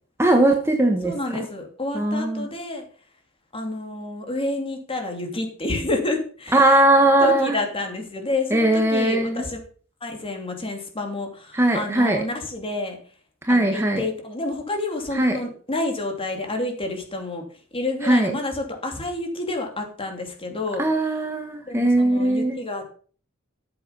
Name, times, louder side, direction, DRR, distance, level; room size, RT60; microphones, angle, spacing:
voice 1, 0.2-1.2 1.9-2.5 6.5-7.6 8.5-9.5 11.5-12.2 13.4-14.0 15.1-15.4 18.0-18.4 20.8-22.6, right 1 dB, 10° right, 3 dB, 1.2 m, -19 dB
voice 2, 1.0-2.9 3.5-6.9 7.2-9.6 10.0-13.0 13.5-17.4 17.7-21.2 21.7-22.9, left 2 dB, 25° left, 3 dB, 2.9 m, -29 dB
13.5 x 7.8 x 5.3 m, 0.43 s
head